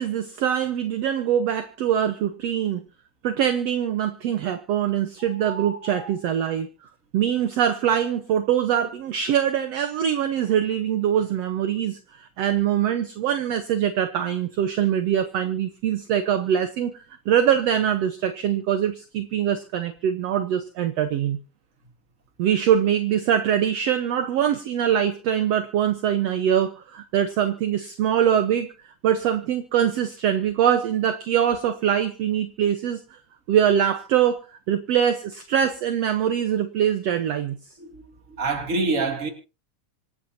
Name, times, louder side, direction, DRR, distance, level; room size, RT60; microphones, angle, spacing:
voice 1, 0.0-2.8 3.2-6.7 7.1-21.4 22.4-28.7 29.0-33.2 33.5-34.4 34.7-37.6, right 9 dB, 65° right, 1.9 m, -23 dB
voice 2, 5.2-6.2 37.8-39.3, right 3 dB, 25° right, 2.6 m, -28 dB
26.5 x 11.5 x 2.8 m
omnidirectional pair, 3.7 m